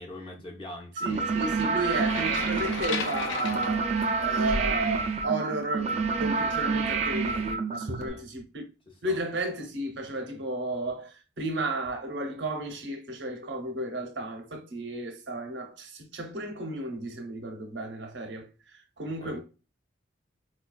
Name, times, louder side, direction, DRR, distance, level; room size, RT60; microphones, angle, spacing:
voice 1, 0.0-1.3 1.6-1.7 7.9-8.3 8.9-9.2 19.2-19.4, left 1 dB, 25° left, 0.7 m, -44 dB
sound 1, 1.0-8.1, right 4 dB, 35° right, 0.4 m, -28 dB
voice 2, 1.0-3.9 4.2-8.6 9.0-18.5 19.0-19.4, right 2 dB, 70° right, 0.8 m, -33 dB
sound 2, 1.8-4.8, left 3 dB, 75° left, 0.5 m, -34 dB
4.4 x 2.3 x 2.3 m
head